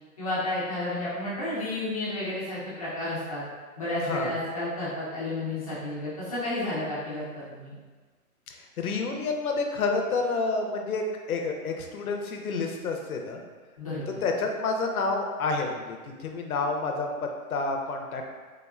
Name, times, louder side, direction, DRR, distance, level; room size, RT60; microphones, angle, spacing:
voice 1, 0.2-3.4 3.8-7.7 13.8-14.2, left 1 dB, 25° left, -10 dB, 0.6 m, -31 dB
voice 2, 8.5-13.4 14.2-18.3, left 3 dB, 70° left, 3 dB, 0.6 m, -29 dB
3.5 x 2.1 x 2.3 m, 1.4 s
hypercardioid pair, 160°, 44 cm